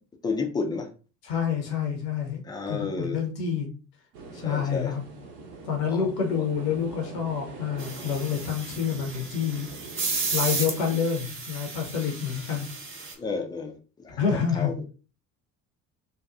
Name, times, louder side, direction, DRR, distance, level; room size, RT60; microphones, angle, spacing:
voice 1, 0.2-0.9 2.4-3.2 4.4-4.9 5.9-6.4 10.8-11.0 13.2-14.8, left 4 dB, 10° left, 3 dB, 0.3 m, -32 dB
voice 2, 1.2-3.7 4.3-5.0 5.7-9.7 10.3-12.7 14.2-14.7, left 7 dB, 75° left, 3 dB, 0.8 m, -28 dB
sound 1, 4.1-10.6, right 3 dB, 70° right, 0.8 m, -44 dB
sound 2, 7.8-13.1, right 4 dB, 25° right, 0.7 m, -33 dB
2.7 x 2.2 x 2.4 m, 0.35 s
figure-of-eight pair, 55°, 48 cm